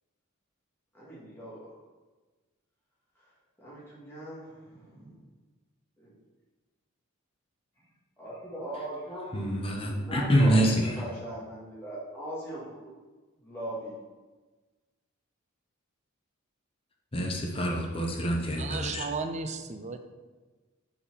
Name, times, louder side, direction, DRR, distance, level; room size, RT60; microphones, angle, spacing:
voice 1, 0.9-1.7 3.6-5.1 6.0-6.1 8.2-9.5 9.9-12.9 13.4-14.0, right 1 dB, 10° left, -8 dB, 1.9 m, -39 dB
voice 2, 9.3-10.9 17.1-19.0, equal, 25° left, 0 dB, 0.9 m, -26 dB
voice 3, 18.6-20.0, right 4 dB, 35° right, 8 dB, 0.5 m, -34 dB
5.6 x 4.3 x 5.4 m, 1.3 s
head